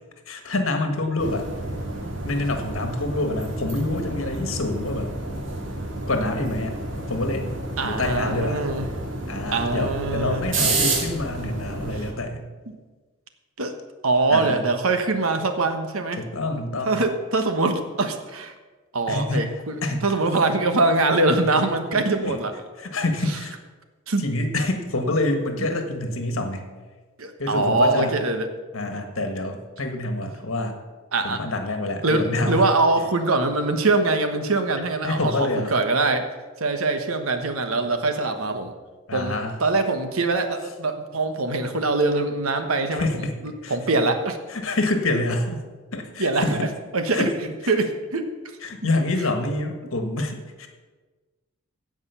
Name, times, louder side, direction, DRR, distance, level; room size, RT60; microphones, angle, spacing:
voice 1, 0.3-1.5 2.2-5.1 6.1-6.8 7.1-7.5 7.8-8.6 9.3-12.5 14.3-14.6 16.2-17.0 19.1-20.1 21.9-22.4 22.8-23.6 24.2-26.6 27.4-28.1 28.7-30.8 31.2-32.7 35.0-35.8 39.1-39.6 42.9-43.8 44.5-45.6 45.9-46.7 47.1-47.4 47.6-47.7 48.6-50.7, left 2 dB, 75° left, 5 dB, 1.6 m, -27 dB
sound 1, 1.2-12.1, right 2 dB, 60° right, 2.2 m, -30 dB
voice 2, 7.8-8.9 9.5-10.5 13.6-13.7 14.0-16.2 16.9-18.5 18.9-19.8 20.0-22.5 24.1-24.2 27.2-28.4 31.1-31.4 32.0-36.3 36.6-38.7 39.1-43.1 43.7-44.4 46.2-46.5 46.9-47.3 47.7-48.3, right 3 dB, 85° right, 7 dB, 1.3 m, -23 dB
16.0 x 5.4 x 6.9 m, 1.3 s
head